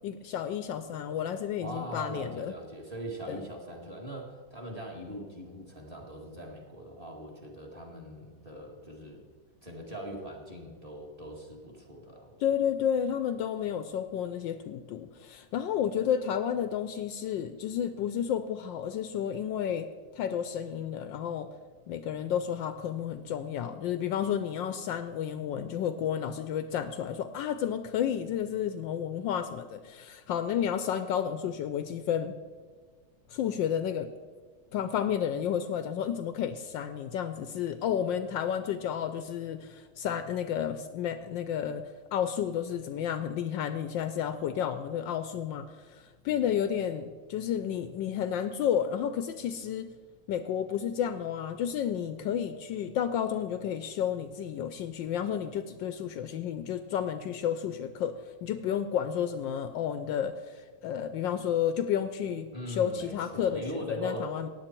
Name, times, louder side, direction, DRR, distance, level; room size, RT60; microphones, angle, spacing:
voice 1, 0.0-2.5 3.3-3.4 12.4-19.9 20.1-21.5 21.9-32.3 33.3-34.1 34.7-49.9 50.3-58.1 58.4-64.5, left 9 dB, 75° left, 11 dB, 1.2 m, -31 dB
voice 2, 1.6-9.2 9.6-12.4 62.5-64.5, right 1 dB, 20° right, 1 dB, 2.1 m, -41 dB
15.5 x 9.8 x 4.5 m, 1.5 s
omnidirectional pair, 2.2 m